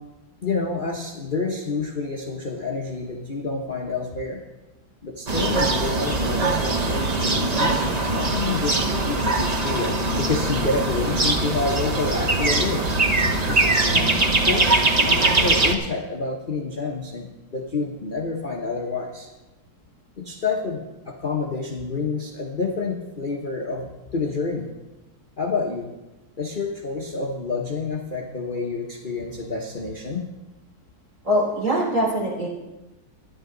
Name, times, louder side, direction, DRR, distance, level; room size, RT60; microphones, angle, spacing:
voice 1, 0.4-4.4 5.0-7.9 8.1-12.8 13.4-17.3 17.5-19.3 20.2-24.7 25.4-25.9 26.4-30.2, left 4 dB, 35° left, -1 dB, 0.9 m, -28 dB
sound 1, 5.3-15.7, right 2 dB, 85° right, 0.3 m, -22 dB
voice 2, 31.2-32.5, equal, 40° right, -3 dB, 4.0 m, -22 dB
13.0 x 10.5 x 3.9 m, 1.1 s
omnidirectional pair, 2.3 m